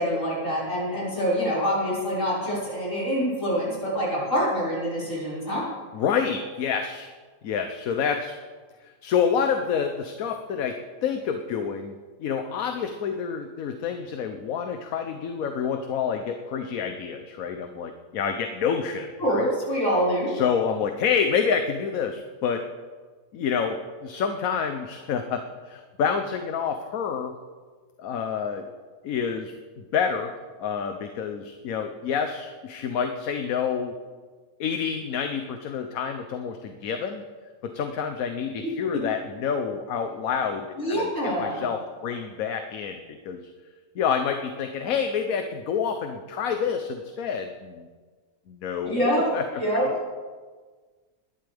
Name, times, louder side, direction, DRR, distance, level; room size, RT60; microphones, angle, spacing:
voice 1, 0.0-5.7 19.2-20.3 38.9-39.0 40.8-41.7 48.8-49.3 49.5-49.8, equal, 55° left, -8 dB, 5.8 m, -25 dB
voice 2, 5.9-7.1 7.4-8.3 9.0-19.5 20.3-22.6 23.3-25.4 25.7-27.3 28.0-28.7 29.0-33.9 34.6-37.2 37.6-43.4 44.0-47.9 48.5-49.4 49.8-50.0, left 6 dB, 70° left, 6 dB, 1.2 m, -28 dB
21.0 x 11.5 x 3.5 m, 1.5 s
omnidirectional pair, 1.6 m